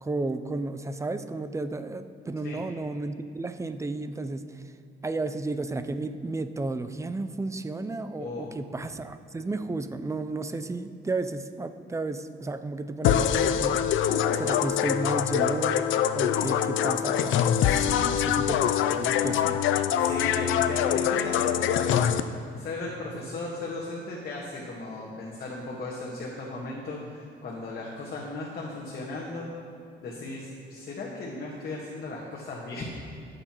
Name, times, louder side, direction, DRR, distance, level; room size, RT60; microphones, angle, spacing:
voice 1, 0.0-4.6 5.0-14.0 14.4-19.6, right 2 dB, 15° right, 10 dB, 0.5 m, -33 dB
voice 2, 8.2-8.5 18.8-19.0 20.0-29.5 30.0-32.9, left 2 dB, 50° left, -4 dB, 1.5 m, -36 dB
sound 1, 13.0-22.2, left 9 dB, 80° left, 0.4 m, -24 dB
16.5 x 6.7 x 3.0 m, 2.5 s
cardioid pair, 90°, 20 cm